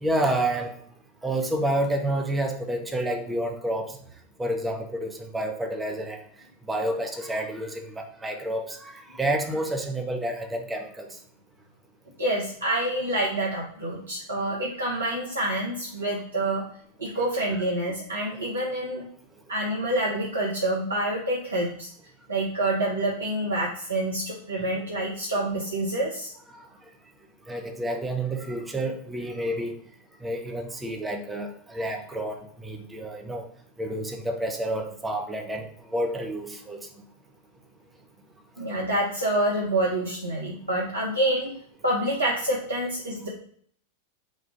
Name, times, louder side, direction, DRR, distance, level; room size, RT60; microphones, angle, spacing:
voice 1, 0.0-0.7 1.2-4.0 4.4-6.2 6.7-11.1 27.5-29.7 30.2-33.4 33.8-36.8, right 1 dB, 10° right, 3 dB, 0.8 m, -29 dB
voice 2, 12.2-16.6 17.0-19.0 19.5-21.9 22.3-26.3 38.6-41.5 41.8-43.3, right 1 dB, 75° right, -4 dB, 1.0 m, -27 dB
4.4 x 2.4 x 4.7 m, 0.63 s
figure-of-eight pair, 90°, 0 cm